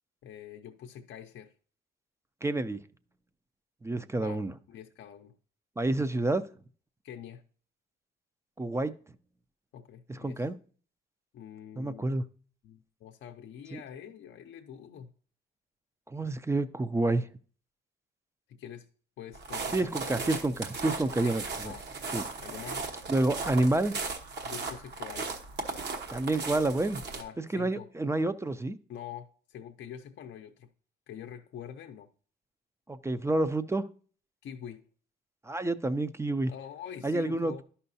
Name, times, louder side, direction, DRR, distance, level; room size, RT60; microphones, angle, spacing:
voice 1, 0.2-1.5 4.2-4.4 4.7-5.3 7.0-7.4 9.7-10.5 11.3-12.1 12.6-15.1 18.5-18.9 19.2-20.4 21.2-22.9 24.4-25.4 27.2-27.9 28.9-30.7 31.1-32.1 34.4-34.8 36.5-37.6, left 9 dB, 70° left, 0.6 m, -45 dB
voice 2, 2.4-2.8 3.8-4.5 5.8-6.4 8.6-8.9 10.1-10.6 11.8-12.2 13.7-13.8 16.1-17.3 19.7-21.7 22.1-22.2 23.1-24.0 26.1-27.0 27.4-28.8 32.9-33.9 35.4-36.5 37.0-37.6, right 2 dB, 15° right, 0.4 m, -29 dB
sound 1, 19.3-27.2, right 4 dB, 60° right, 1.1 m, -37 dB
11.0 x 5.6 x 2.7 m
cardioid pair, 90°, 20 cm